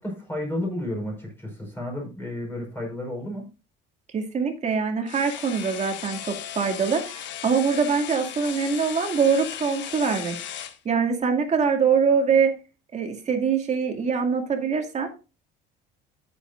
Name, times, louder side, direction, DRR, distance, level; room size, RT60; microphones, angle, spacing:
voice 1, 0.0-3.4, left 1 dB, 10° left, -1 dB, 5.2 m, -32 dB
voice 2, 4.1-10.3 10.8-12.5 12.9-15.1, right 6 dB, 35° right, 3 dB, 2.4 m, -23 dB
sound 1, 5.1-10.8, left 10 dB, 65° left, 1.5 m, -36 dB
14.0 x 7.7 x 2.6 m, 0.31 s
cardioid pair, 120°, 20 cm